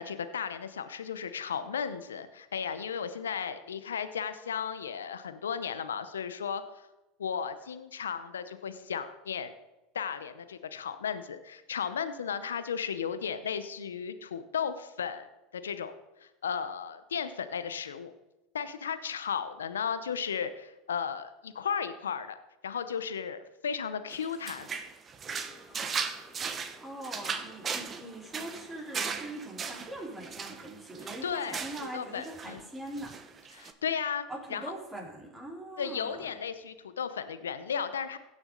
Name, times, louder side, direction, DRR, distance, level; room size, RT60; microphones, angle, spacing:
voice 1, 0.0-6.6 7.2-9.5 9.9-15.3 15.5-18.1 18.5-24.7 31.2-32.6 33.5-34.7 35.8-38.2, left 7 dB, 90° left, 11 dB, 0.7 m, -35 dB
sound 1, 24.1-32.0 32.2-32.6 32.9-33.7, right 6 dB, 30° right, 0.9 m, -37 dB
sound 2, 25.2-30.7, left 1 dB, 10° left, 2.7 m, -57 dB
voice 2, 26.8-33.1 34.3-36.4, right 1 dB, 10° right, -3 dB, 3.9 m, -42 dB
16.5 x 6.2 x 3.8 m, 1.0 s
hypercardioid pair, 90°, 0 cm